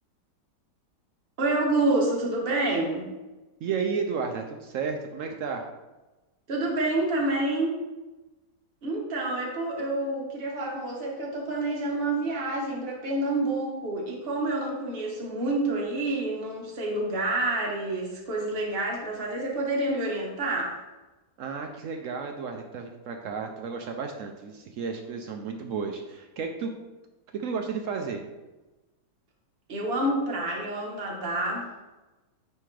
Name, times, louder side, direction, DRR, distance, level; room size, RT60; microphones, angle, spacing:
voice 1, 1.4-3.1 6.5-7.8 8.8-20.8 29.7-31.7, right 2 dB, 40° right, -1 dB, 1.3 m, -28 dB
voice 2, 3.6-5.7 21.4-26.7 27.3-28.2, right 5 dB, 70° right, 4 dB, 0.8 m, -32 dB
9.0 x 3.4 x 3.2 m, 1.1 s
omnidirectional pair, 1.8 m